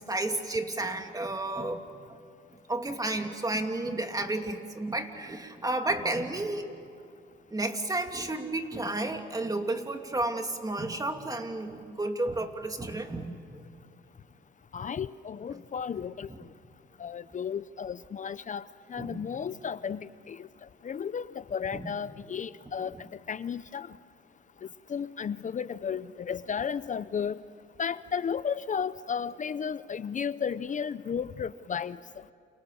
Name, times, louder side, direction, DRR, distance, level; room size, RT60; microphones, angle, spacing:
voice 1, 0.0-1.8 2.7-6.7 7.5-13.6 19.0-19.3 21.7-21.9, right 2 dB, 20° right, 5 dB, 2.8 m, -32 dB
voice 2, 14.7-16.3 17.0-18.6 18.9-20.5 20.8-24.0 24.9-27.4 27.8-32.0, left 7 dB, 40° left, 16 dB, 0.7 m, -33 dB
29.5 x 29.0 x 7.0 m, 2.5 s
cardioid pair, 90°, 20 cm